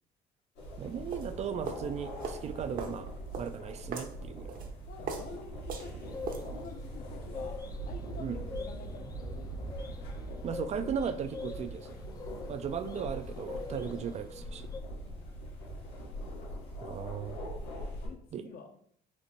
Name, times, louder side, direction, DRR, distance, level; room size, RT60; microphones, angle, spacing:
sound 1, 0.6-18.1, right 1 dB, 85° left, 1.9 m, -42 dB
voice 1, 0.8-3.1 3.4-4.6 8.2-8.4 10.4-12.0 12.5-14.7 16.8-17.4 18.3-18.5, right 7 dB, 40° right, 10 dB, 0.4 m, -37 dB
sound 2, 0.9-6.9, right 4 dB, 55° right, 0.8 m, -42 dB
voice 2, 4.9-6.0 6.4-10.0 12.0-12.1 15.0-15.2 18.0-18.8, left 5 dB, 60° left, 6 dB, 0.7 m, -49 dB
sound 3, 6.0-14.8, left 4 dB, 20° left, 0.4 m, -45 dB
4.3 x 2.5 x 4.2 m, 0.64 s
cardioid pair, 110°, 17 cm